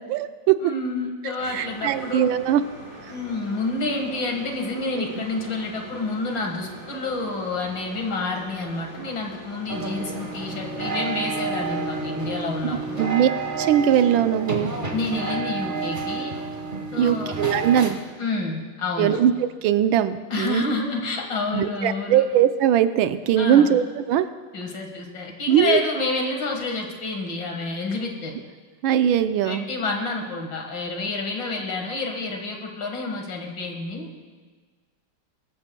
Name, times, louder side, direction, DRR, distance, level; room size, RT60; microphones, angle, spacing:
voice 1, 0.1-0.6 1.5-2.6 5.0-5.1 13.0-13.3 13.5-14.7 17.0-18.0 19.0-20.6 21.5-24.3 25.5-25.8 28.8-29.6, right 10 dB, 85° right, 10 dB, 1.4 m, -20 dB
voice 2, 0.6-2.3 3.1-13.1 14.9-16.3 16.9-17.4 18.2-19.2 20.3-22.3 23.4-23.8 24.5-28.4 29.4-34.1, left 3 dB, 65° left, 2 dB, 2.3 m, -29 dB
sound 1, 1.4-13.0, right 1 dB, 50° right, 4.6 m, -42 dB
sound 2, 9.7-17.9, right 3 dB, 30° right, 1.4 m, -30 dB
23.0 x 14.0 x 2.3 m, 1.5 s
omnidirectional pair, 2.2 m